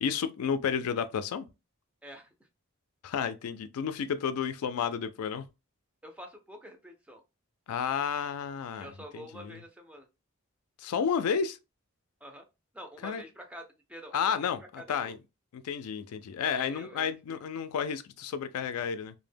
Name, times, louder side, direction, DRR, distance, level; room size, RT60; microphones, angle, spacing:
voice 1, 0.0-1.5 3.0-5.5 7.7-8.9 9.1-9.6 10.8-11.6 13.0-13.2 14.1-15.2 15.5-19.1, left 7 dB, 85° left, 0.3 m, -31 dB
voice 2, 2.0-2.5 6.0-7.2 8.7-10.1 12.2-12.4 12.7-15.1 16.5-17.4, equal, 5° right, 0.4 m, -47 dB
2.1 x 2.1 x 3.3 m
head